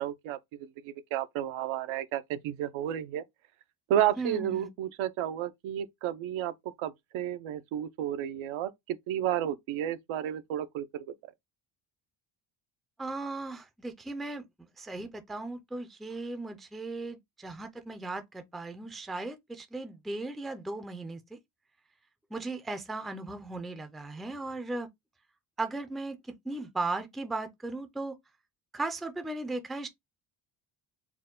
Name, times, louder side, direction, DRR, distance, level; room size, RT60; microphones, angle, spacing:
voice 1, 0.0-3.2 3.9-6.5 6.8-11.0, right 11 dB, 85° right, 0.7 m, -32 dB
voice 2, 4.2-4.7 13.0-21.4 22.3-24.9 25.6-28.1 28.7-29.9, right 2 dB, ahead, 0.3 m, -37 dB
4.5 x 2.1 x 3.6 m
cardioid pair, 130°, 47 cm